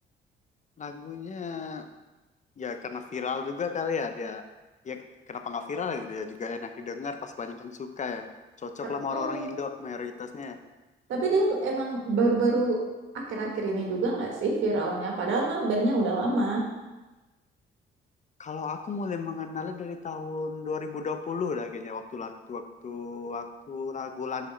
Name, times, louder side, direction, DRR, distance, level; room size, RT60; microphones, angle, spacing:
voice 1, 0.8-1.9 2.6-4.4 4.8-8.3 8.6-10.6 18.4-24.5, left 5 dB, 35° left, 8 dB, 0.5 m, -34 dB
voice 2, 9.1-9.5 11.1-12.8 13.1-16.6, right 2 dB, 75° right, 0 dB, 1.5 m, -26 dB
5.8 x 4.1 x 5.0 m, 1.1 s
cardioid pair, 90°, 20 cm